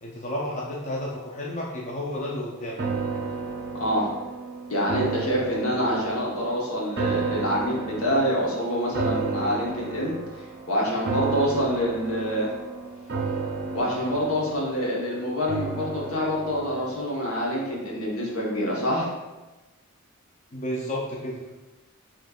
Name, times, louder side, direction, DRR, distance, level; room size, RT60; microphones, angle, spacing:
voice 1, 0.0-2.8 20.5-21.4, left 1 dB, 30° left, -3 dB, 0.4 m, -31 dB
sound 1, 2.8-18.1 18.5-18.6, right 4 dB, 50° right, 0.5 m, -33 dB
voice 2, 3.8-4.1 4.7-10.2 10.7-12.5 13.7-19.1, equal, 75° left, -3 dB, 1.1 m, -26 dB
5.0 x 3.0 x 2.4 m, 1.1 s
head